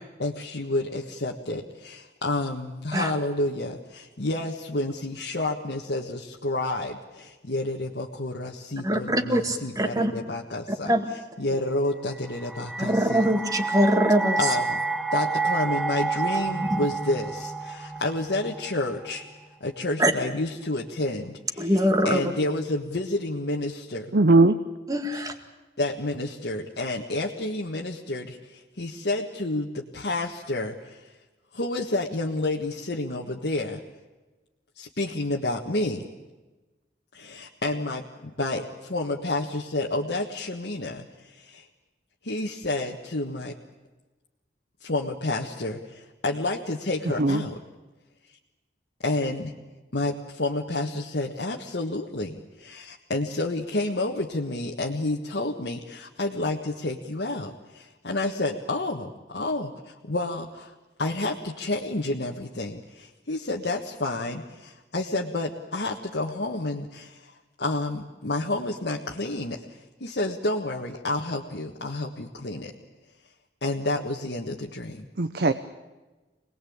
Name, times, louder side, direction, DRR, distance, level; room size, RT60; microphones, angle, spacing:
voice 1, 0.2-10.9 11.4-13.3 14.4-14.8 15.1-19.2 19.6-24.1 25.1-25.2 25.8-31.1 31.5-33.8 34.7-36.1 37.1-41.7 42.2-43.5 44.8-47.6 49.0-49.5 49.9-60.7 61.0-67.3 67.6-72.7 73.6-75.1, left 2 dB, 65° left, -1 dB, 1.5 m, -30 dB
voice 2, 8.8-10.1 10.9-11.1 12.8-14.4 20.0-20.1 21.6-22.2 24.9-25.3, equal, 20° right, 6 dB, 2.1 m, -23 dB
sound 1, 12.1-19.2, right 4 dB, ahead, 0.8 m, -29 dB
voice 3, 24.1-24.6 47.2-47.4 75.2-75.5, right 2 dB, 60° right, 10 dB, 0.9 m, -18 dB
26.0 x 19.5 x 8.7 m, 1.2 s
head